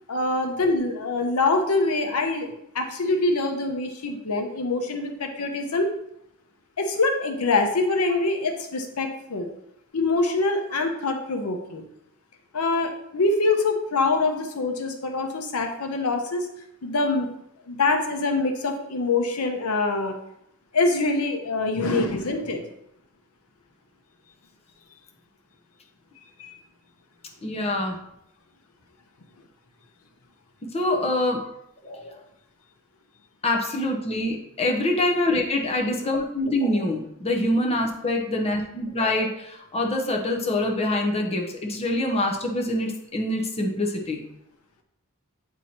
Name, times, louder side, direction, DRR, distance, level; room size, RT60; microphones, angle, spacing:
voice 1, 0.1-2.5 2.7-5.9 6.8-9.5 9.9-11.8 12.5-16.5 16.8-17.3 17.7-20.2 20.7-22.7 26.4-26.5, left 3 dB, 85° left, 4 dB, 0.8 m, -24 dB
voice 2, 27.4-28.0 30.6-31.4 31.8-32.2 33.4-44.2, left 1 dB, 30° left, 1 dB, 0.7 m, -25 dB
7.8 x 2.8 x 4.3 m, 0.78 s
head